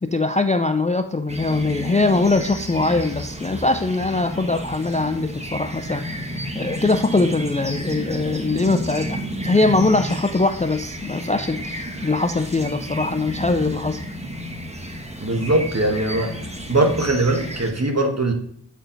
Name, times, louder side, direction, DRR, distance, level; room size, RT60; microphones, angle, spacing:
voice 1, 0.0-14.0, left 3 dB, 20° left, 8 dB, 0.4 m, -22 dB
sound 1, 1.3-17.7, equal, 15° right, 1.0 m, -31 dB
voice 2, 15.2-18.3, right 2 dB, 40° right, 3 dB, 1.3 m, -21 dB
8.1 x 4.4 x 3.9 m, 0.67 s
wide cardioid pair, 40°, 41 cm